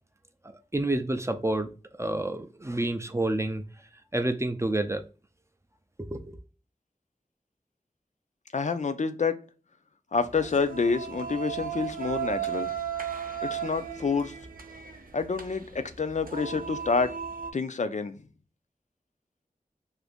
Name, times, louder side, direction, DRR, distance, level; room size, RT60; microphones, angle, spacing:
voice 1, 0.7-1.7 2.0-3.6 4.1-5.0 6.0-6.4, right 1 dB, 20° right, 0.4 m, -28 dB
voice 2, 8.5-9.4 10.1-12.7 13.5-14.3 15.1-17.1 17.5-18.1, left 4 dB, 55° left, 0.4 m, -28 dB
sound 1, 10.2-17.5, right 8 dB, 70° right, 0.5 m, -36 dB
2.6 x 2.5 x 3.4 m
wide cardioid pair, 65°, 15 cm